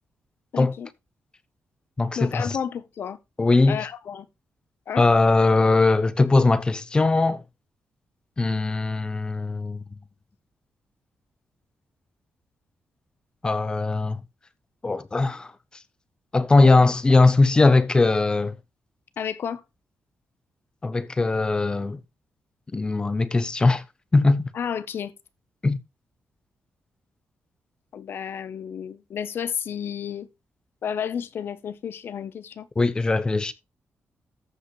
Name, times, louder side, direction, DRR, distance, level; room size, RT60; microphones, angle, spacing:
voice 1, 0.5-0.9 2.2-3.2 3.7-4.3 4.9-5.1 16.6-16.9 19.2-19.6 24.5-25.1 27.9-30.3 30.8-32.7, left 8 dB, 55° left, 0.9 m, -31 dB
voice 2, 2.0-2.6 3.4-3.8 5.0-7.4 8.4-9.8 13.4-14.2 14.8-15.5 16.3-18.5 20.8-22.0 22.7-23.8 24.1-24.5 25.6-25.8 32.8-33.5, left 3 dB, 20° left, 0.7 m, -20 dB
14.0 x 5.2 x 3.1 m
wide cardioid pair, 175°, 5 cm